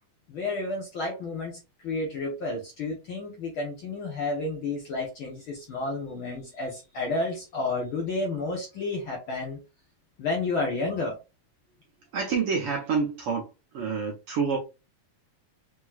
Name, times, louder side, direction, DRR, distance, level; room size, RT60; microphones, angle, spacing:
voice 1, 0.3-1.6 1.8-9.6 10.2-11.2, left 3 dB, 55° left, 1.5 m, -31 dB
voice 2, 12.1-13.5 13.7-14.6, right 5 dB, 60° right, 1.6 m, -27 dB
5.9 x 3.0 x 2.4 m
omnidirectional pair, 3.4 m